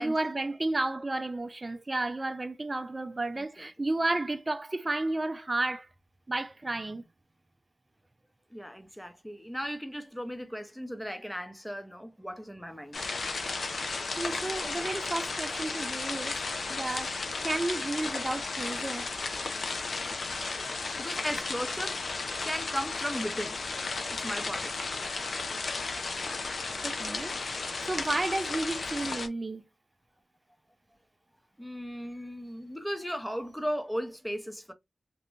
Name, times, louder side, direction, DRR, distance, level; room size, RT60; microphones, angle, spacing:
voice 1, 0.0-5.9 6.3-7.0 14.2-16.4 16.7-17.1 17.4-19.0 26.8-27.3 27.8-29.6, right 2 dB, 35° right, 0.4 m, -32 dB
voice 2, 3.4-3.7 8.5-13.0 20.9-22.0 22.4-23.6 24.1-24.7 31.6-34.7, equal, 5° left, 0.6 m, -36 dB
sound 1, 12.9-29.3, left 3 dB, 70° left, 0.5 m, -34 dB
2.5 x 2.1 x 3.0 m
cardioid pair, 55°, 0 cm